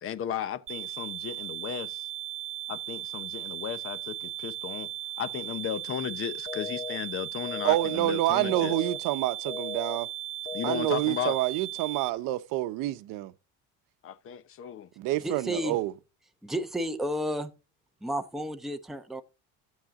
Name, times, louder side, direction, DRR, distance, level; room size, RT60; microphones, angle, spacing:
voice 1, 0.0-2.1 2.7-4.9 5.2-8.7 10.5-11.4 14.0-14.9, left 9 dB, 40° left, 0.9 m, -35 dB
sound 1, 0.7-12.1, right 14 dB, 40° right, 0.5 m, -37 dB
sound 2, 6.5-7.0 7.5-8.0 8.5-9.0 9.5-10.0 10.5-11.0, left 7 dB, 75° left, 2.6 m, -37 dB
voice 2, 7.6-10.1 10.6-13.3 15.0-15.9, right 16 dB, 65° right, 0.9 m, -28 dB
voice 3, 15.2-15.8 16.4-17.5 18.0-19.2, equal, ahead, 0.8 m, -32 dB
14.5 x 7.5 x 3.7 m
cardioid pair, 145°, 35 cm